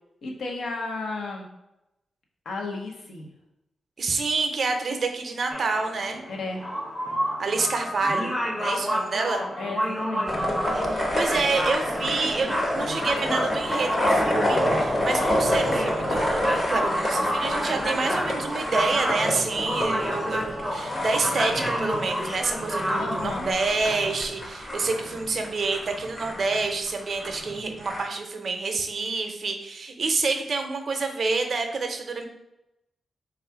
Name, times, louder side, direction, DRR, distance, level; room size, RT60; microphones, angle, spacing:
voice 1, 0.2-1.5 2.4-3.3 6.3-6.6 9.6-10.3 23.0-23.5, left 3 dB, 75° left, 1 dB, 0.8 m, -33 dB
voice 2, 4.0-6.2 7.4-9.4 10.9-20.4 20.7-32.3, right 3 dB, 50° right, 5 dB, 0.6 m, -28 dB
sound 1, 5.5-23.5, equal, 5° left, 0.6 m, -30 dB
sound 2, 10.3-28.0, left 1 dB, 35° left, 0.9 m, -28 dB
3.5 x 2.4 x 4.4 m, 0.88 s
cardioid pair, 95°, 0 cm